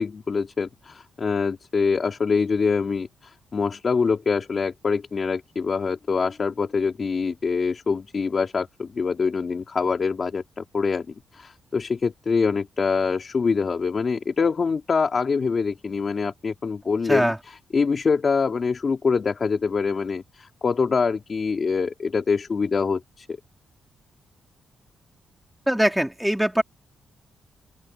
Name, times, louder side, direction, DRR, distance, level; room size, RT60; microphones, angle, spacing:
voice 1, 0.0-23.3, left 5 dB, 30° left, 4.1 m, -25 dB
voice 2, 25.7-26.6, equal, 5° right, 3.2 m, -21 dB
open air
wide cardioid pair, 175°, 0 cm